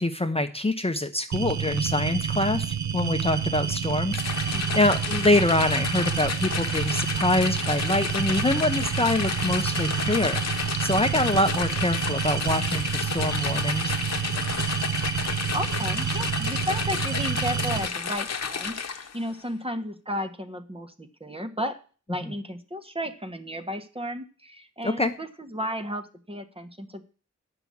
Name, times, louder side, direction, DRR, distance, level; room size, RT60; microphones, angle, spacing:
voice 1, 0.0-14.0 24.8-25.1, left 1 dB, 20° left, 6 dB, 0.8 m, -25 dB
sound 1, 1.3-17.9, right 7 dB, 75° right, 0.8 m, -29 dB
sound 2, 4.1-19.2, left 6 dB, 65° left, 1.0 m, -31 dB
voice 2, 4.5-4.9 15.5-21.8 22.1-27.0, equal, 20° right, 8 dB, 1.3 m, -33 dB
9.8 x 6.0 x 8.5 m, 0.40 s
cardioid pair, 60°, 29 cm